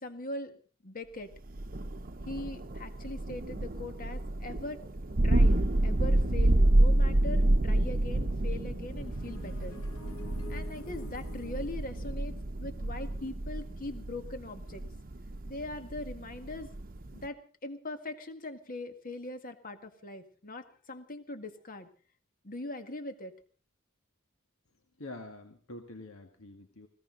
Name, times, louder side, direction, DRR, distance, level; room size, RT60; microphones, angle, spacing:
voice 1, 0.0-0.6 0.8-1.3 2.3-4.8 5.2-9.8 10.5-14.8 15.5-16.7 17.1-21.9 22.4-23.4, left 2 dB, 40° left, 8 dB, 1.9 m, -41 dB
Thunder, 1.5-17.3, right 1 dB, 45° right, 0.9 m, -29 dB
sound 1, 8.6-14.3, left 2 dB, 90° left, 1.7 m, -51 dB
voice 2, 25.0-26.9, left 2 dB, 75° left, 5 dB, 1.9 m, -46 dB
20.5 x 17.0 x 4.0 m, 0.40 s
head